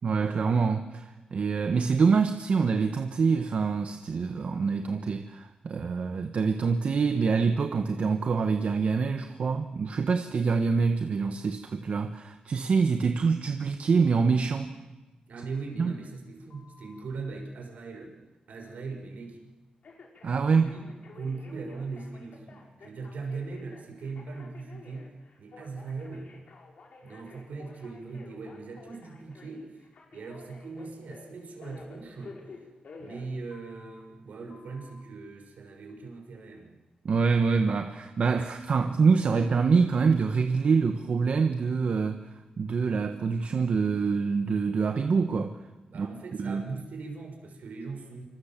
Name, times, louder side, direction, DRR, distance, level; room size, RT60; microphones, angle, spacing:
voice 1, 0.0-14.7 15.8-15.9 20.2-20.7 37.0-42.2 42.6-45.6 45.9-46.1 46.4-46.6, right 5 dB, 55° right, 6 dB, 1.4 m, -25 dB
voice 2, 15.3-18.2 18.5-19.4 20.5-25.1 25.4-26.3 27.0-29.8 30.1-32.4 33.0-36.8 45.8-48.2, right 4 dB, 75° right, 3 dB, 6.2 m, -39 dB
Telephone, 16.5-17.0 19.8-34.0 34.5-35.0, left 4 dB, 60° left, 5.1 m, -51 dB
27.0 x 25.5 x 7.6 m, 1.1 s
wide cardioid pair, 135°, 3 cm